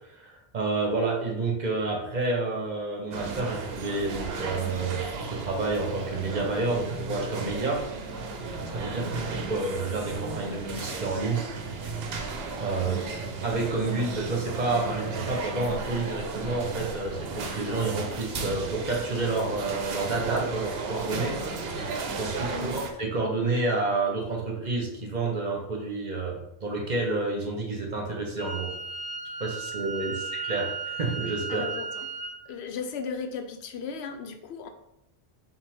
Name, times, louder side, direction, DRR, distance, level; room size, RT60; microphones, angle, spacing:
voice 1, 0.0-7.8 8.6-9.1 9.5-11.4 12.6-13.0 13.4-21.4 22.1-28.7 29.4-31.7, right 3 dB, 45° right, 0 dB, 0.9 m, -29 dB
sound 1, 3.1-22.9, right 3 dB, 70° right, 0.8 m, -34 dB
voice 2, 9.0-9.3 12.8-13.3 22.5-22.9 30.1-30.2 31.5-32.1 32.5-34.7, left 5 dB, 85° left, 6 dB, 0.9 m, -37 dB
Wind instrument woodwind instrument, 28.4-32.4, right 4 dB, 5° left, 0.6 m, -35 dB
5.8 x 2.4 x 3.5 m, 0.81 s
omnidirectional pair, 1.1 m